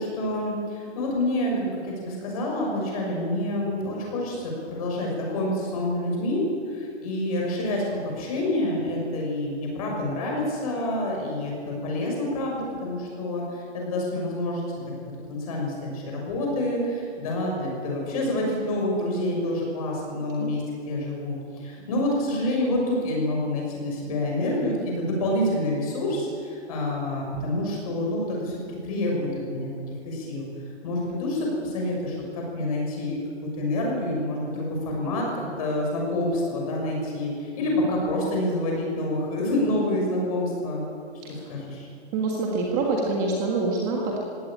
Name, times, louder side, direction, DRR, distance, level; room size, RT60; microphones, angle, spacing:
voice 1, 0.0-14.9 15.3-30.5 30.8-40.8 41.3-41.9, left 1 dB, 30° left, -1 dB, 6.4 m, -27 dB
voice 2, 42.1-44.2, right 3 dB, 15° right, -1 dB, 1.6 m, -26 dB
20.5 x 17.0 x 8.8 m, 2.3 s
hypercardioid pair, 175°, 34 cm